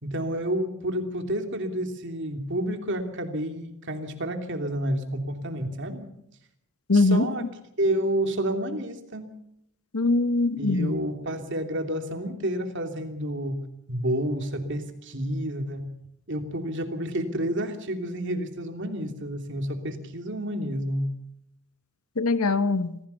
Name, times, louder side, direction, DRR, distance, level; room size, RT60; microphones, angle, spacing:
voice 1, 0.0-6.1 6.9-7.5 7.8-9.3 10.6-13.6 13.9-15.9 16.3-21.1, right 1 dB, 55° right, 2.9 m, -30 dB
voice 2, 6.9-7.3 9.9-10.9 22.2-22.9, left 3 dB, 75° left, 1.1 m, -22 dB
25.5 x 16.5 x 7.0 m
head